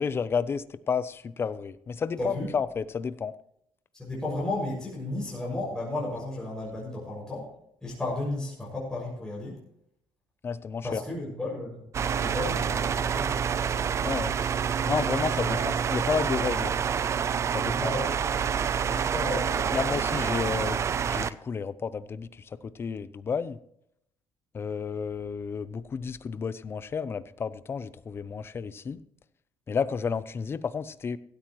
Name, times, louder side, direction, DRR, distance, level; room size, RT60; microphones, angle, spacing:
voice 1, 0.0-3.3 10.4-11.0 14.0-14.4 14.9-16.8 17.5-17.9 19.7-23.6 24.5-29.0 29.7-31.2, left 6 dB, 25° left, 16 dB, 0.6 m, -31 dB
voice 2, 2.2-2.5 3.9-7.5 7.8-9.6 10.8-13.4 15.4-15.6 17.7-19.8, left 2 dB, 5° left, -5 dB, 6.3 m, -34 dB
sound 1, 11.9-21.3, right 7 dB, 30° right, 0.5 m, -27 dB
17.0 x 13.0 x 3.1 m, 0.74 s
cardioid pair, 150°, 9 cm